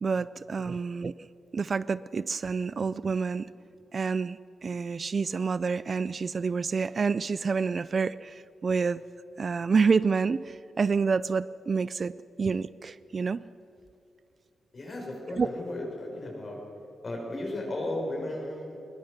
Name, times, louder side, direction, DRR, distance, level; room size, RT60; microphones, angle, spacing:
voice 1, 0.0-1.1 1.5-3.5 3.9-9.0 9.4-13.4 15.4-15.5, right 5 dB, 40° right, 17 dB, 0.4 m, -28 dB
voice 2, 14.7-16.6 17.0-18.8, left 1 dB, 40° left, 0 dB, 6.2 m, -35 dB
21.5 x 21.0 x 6.7 m, 2.6 s
wide cardioid pair, 125°, 0 cm